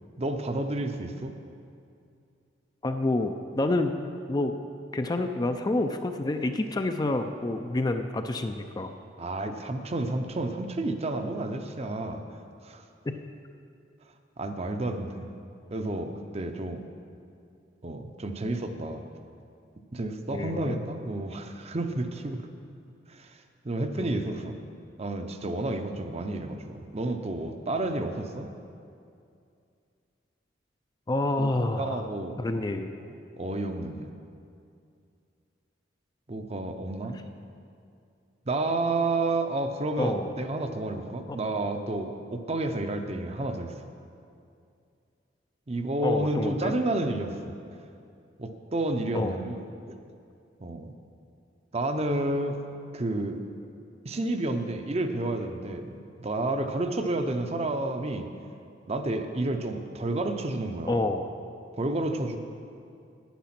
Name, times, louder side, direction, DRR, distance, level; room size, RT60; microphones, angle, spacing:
voice 1, 0.2-1.3 9.2-12.2 12.6-12.8 14.4-15.3 15.7-16.8 17.8-19.0 19.9-22.4 23.1-23.4 23.6-24.6 25.0-28.5 31.4-32.4 33.1-34.1 36.3-37.2 38.5-43.7 45.7-47.5 48.4-49.6 50.6-50.9 51.7-52.6 52.9-53.4 54.0-58.3 58.9-61.1 61.8-62.4, right 2 dB, 35° right, 6 dB, 0.7 m, -30 dB
voice 2, 2.8-4.0 4.3-4.5 4.9-8.9 13.1-13.2 20.3-20.8 24.0-24.3 31.1-32.0 32.4-32.9 40.0-40.3 41.3-41.4 46.0-46.7 49.1-49.4 60.9-61.3, left 2 dB, 20° left, 7 dB, 0.4 m, -28 dB
10.5 x 9.3 x 5.9 m, 2.5 s
head